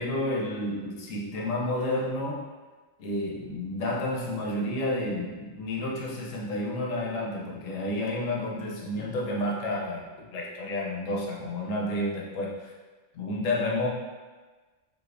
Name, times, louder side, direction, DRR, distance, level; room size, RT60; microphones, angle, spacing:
voice 1, 0.0-2.5 3.0-12.7 13.1-13.9, left 1 dB, 85° left, -2 dB, 1.0 m, -30 dB
4.2 x 2.6 x 2.4 m, 1.3 s
omnidirectional pair, 1.3 m